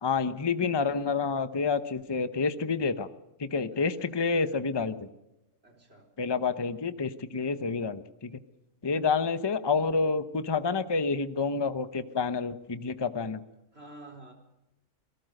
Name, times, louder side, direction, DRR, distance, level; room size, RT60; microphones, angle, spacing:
voice 1, 0.0-3.1 3.4-5.1 6.2-8.4 8.8-13.4, left 4 dB, 20° left, 12 dB, 0.8 m, -28 dB
voice 2, 3.7-4.1 5.6-6.1 13.7-14.3, right 2 dB, 45° right, 3 dB, 4.4 m, -50 dB
27.5 x 18.0 x 6.6 m, 0.90 s
omnidirectional pair, 1.5 m